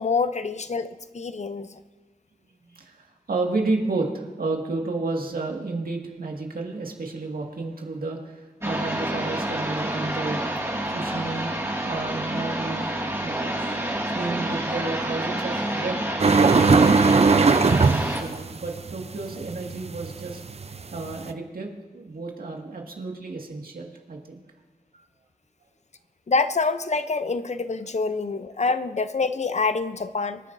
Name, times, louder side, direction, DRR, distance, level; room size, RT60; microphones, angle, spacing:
voice 1, 0.0-1.8 26.3-30.4, left 4 dB, 50° left, 11 dB, 0.6 m, -26 dB
voice 2, 2.7-10.5 10.9-13.8 14.1-16.1 17.0-20.4 20.9-24.4, right 3 dB, 80° right, 1 dB, 2.0 m, -31 dB
sound 1, 8.6-18.2, right 1 dB, 15° right, 2.1 m, -28 dB
sound 2, 16.2-21.3, right 4 dB, 45° right, 0.6 m, -19 dB
25.5 x 10.0 x 2.7 m, 1.3 s
wide cardioid pair, 60°, 15 cm